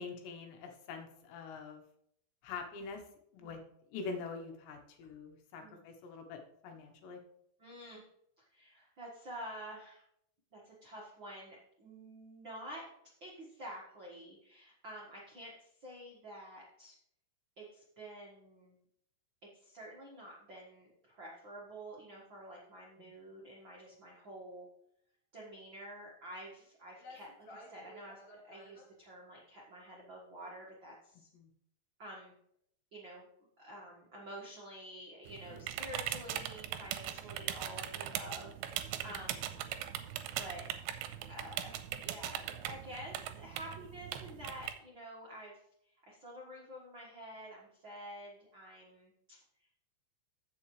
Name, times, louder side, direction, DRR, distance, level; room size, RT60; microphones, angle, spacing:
voice 1, 0.0-1.8 2.4-3.0 3.3-3.6 3.9-7.2 23.0-23.1 31.3-31.5 39.1-39.4, left 4 dB, 80° left, 4 dB, 3.3 m, -45 dB
voice 2, 7.6-8.0 8.4-10.0 10.5-12.8 13.2-16.9 17.6-18.7 19.4-24.7 25.3-31.3 32.0-32.3 32.9-33.3 33.6-39.5 40.4-40.7 41.3-49.4, equal, 60° right, -4 dB, 1.2 m, -49 dB
sound 1, 26.6-26.7 27.0-28.9, left 1 dB, 50° left, 2.6 m, -54 dB
sound 2, 35.3-44.7, right 11 dB, 85° right, 2.7 m, -40 dB
15.0 x 6.9 x 3.2 m, 0.73 s
omnidirectional pair, 5.0 m